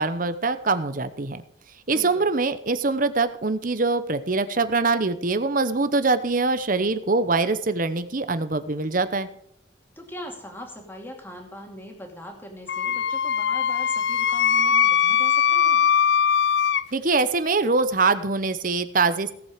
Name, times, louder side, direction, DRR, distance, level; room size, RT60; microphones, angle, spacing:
voice 1, 0.0-1.4 1.9-9.3 16.9-19.3, right 3 dB, 45° right, 12 dB, 0.9 m, -23 dB
voice 2, 1.9-2.2 10.0-15.8, left 1 dB, 10° left, 2 dB, 2.5 m, -40 dB
Wind instrument woodwind instrument, 12.7-16.8, left 8 dB, 60° left, 0.5 m, -21 dB
17.0 x 7.7 x 5.0 m, 0.69 s
head